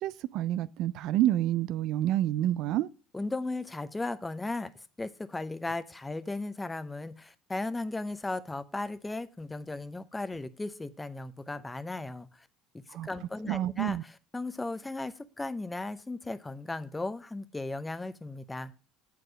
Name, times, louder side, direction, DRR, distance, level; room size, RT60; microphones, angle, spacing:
voice 1, 0.0-2.9 12.9-13.1 13.5-14.0, right 13 dB, 60° right, 0.3 m, -28 dB
voice 2, 3.1-12.5 13.0-18.7, left 2 dB, 15° left, 0.7 m, -36 dB
7.8 x 4.7 x 6.1 m
hypercardioid pair, 70°, 0 cm